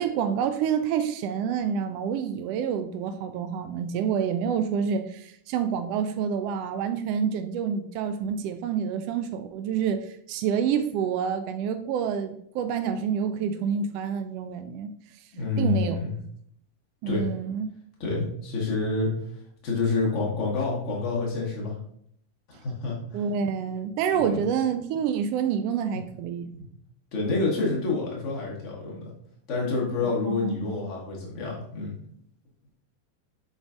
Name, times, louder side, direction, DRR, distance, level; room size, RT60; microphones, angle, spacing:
voice 1, 0.0-14.9 15.6-16.0 17.0-17.7 23.1-26.5 30.0-30.7, right 7 dB, 45° right, 9 dB, 0.3 m, -28 dB
voice 2, 15.3-16.1 17.1-17.2 18.0-19.1 19.6-21.7 22.5-23.2 24.1-24.4 25.9-26.0 26.5-26.6 27.1-29.0 29.5-32.0, left 3 dB, 45° left, -3 dB, 1.4 m, -28 dB
4.5 x 3.9 x 2.4 m, 0.67 s
figure-of-eight pair, 90°, 0 cm